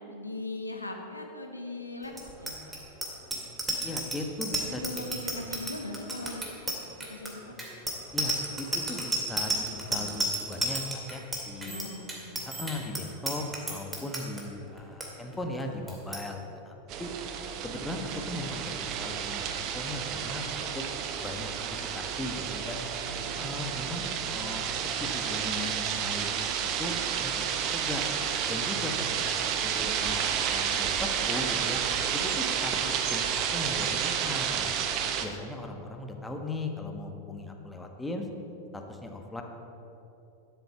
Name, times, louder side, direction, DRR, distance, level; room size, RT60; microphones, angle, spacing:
voice 1, 0.1-2.1 2.4-2.6 4.6-6.6 7.1-7.5 9.9-10.1 11.6-12.4 18.0-18.3 23.0-23.5, left 2 dB, 85° left, 2 dB, 1.5 m, -40 dB
Bicycle bell, 2.1-14.4 14.8-15.1 15.3-15.6 15.9-16.2, right 2 dB, 10° right, 2.5 m, -32 dB
voice 2, 3.8-5.1 8.1-11.8 12.4-16.7 17.0-17.1 17.6-20.8 21.2-21.7 21.9-22.8 23.4-24.6 25.0-27.4 27.7-28.0 28.4-28.9 29.2-30.2 30.5-31.8 32.1-34.9 35.2-38.3 38.7-39.4, left 2 dB, 10° left, 3 dB, 1.4 m, -38 dB
sound 1, 16.9-35.3, right 8 dB, 40° right, 1.0 m, -31 dB
12.5 x 8.2 x 7.1 m, 3.0 s
figure-of-eight pair, 90°, 0 cm